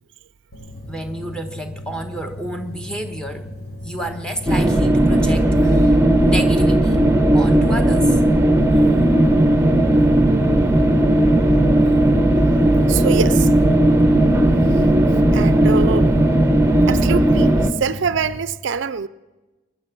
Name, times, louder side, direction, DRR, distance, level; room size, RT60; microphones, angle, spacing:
sound 1, 0.5-18.4, left 1 dB, 50° left, 2.0 m, -36 dB
voice 1, 0.9-3.5 3.8-7.0 7.3-8.2, right 1 dB, 5° left, 1.1 m, -30 dB
sound 2, 4.5-17.7, right 1 dB, 15° right, 0.9 m, -15 dB
voice 2, 12.9-13.5 15.3-16.1 16.9-19.1, right 6 dB, 65° right, 0.4 m, -24 dB
22.0 x 10.0 x 6.0 m
head